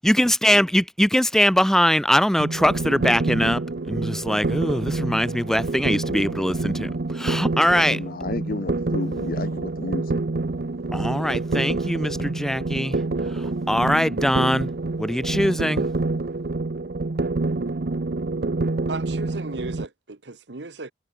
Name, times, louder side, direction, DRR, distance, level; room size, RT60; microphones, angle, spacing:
voice 1, 0.0-3.6 3.9-6.9 7.2-8.0 10.9-13.0 13.7-14.7 15.0-15.9, equal, 5° left, 1.1 m, -21 dB
sound 1, 2.4-19.9, right 3 dB, 60° right, 0.7 m, -27 dB
voice 2, 7.5-10.2, left 2 dB, 55° left, 0.8 m, -32 dB
voice 3, 18.9-20.9, right 3 dB, 80° right, 1.3 m, -35 dB
head